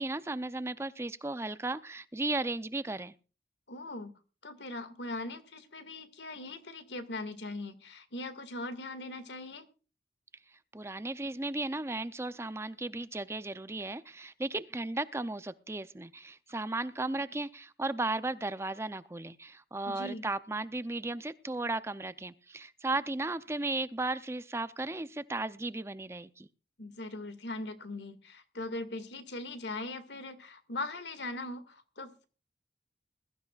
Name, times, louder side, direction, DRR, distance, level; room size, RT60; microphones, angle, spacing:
voice 1, 0.0-3.1 10.7-26.5, right 2 dB, 15° right, 14 dB, 0.5 m, -35 dB
voice 2, 3.7-4.1 4.4-9.7 19.9-20.2 26.8-32.3, left 2 dB, 85° left, 10 dB, 2.0 m, -40 dB
22.0 x 13.0 x 2.4 m, 0.35 s
head